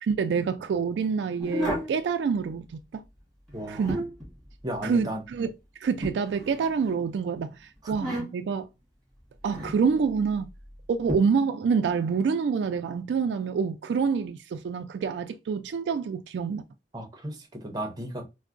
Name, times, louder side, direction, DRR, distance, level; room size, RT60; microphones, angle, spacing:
voice 1, 0.0-3.0 3.7-4.0 4.8-5.5 5.8-8.7 9.4-10.5 10.9-16.6, right 5 dB, 75° right, 0.3 m, -27 dB
sound 1, 1.4-2.0 3.5-4.3 6.0-6.9 7.9-8.6 9.4-9.8 11.1-11.2, equal, 5° left, 1.4 m, -32 dB
voice 2, 3.5-3.9 4.6-5.2 7.8-7.9 16.9-18.2, equal, 20° right, 0.7 m, -34 dB
4.4 x 2.1 x 2.4 m
head